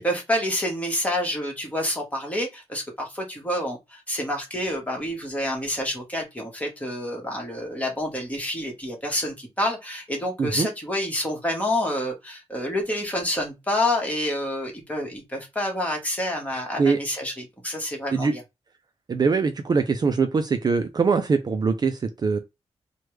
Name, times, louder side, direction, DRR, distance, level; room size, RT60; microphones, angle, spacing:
voice 1, 0.0-18.4, left 1 dB, 10° left, 1.2 m, -28 dB
voice 2, 19.1-22.4, right 5 dB, 40° right, 0.4 m, -22 dB
3.2 x 2.2 x 3.1 m
wide cardioid pair, 125°, 11 cm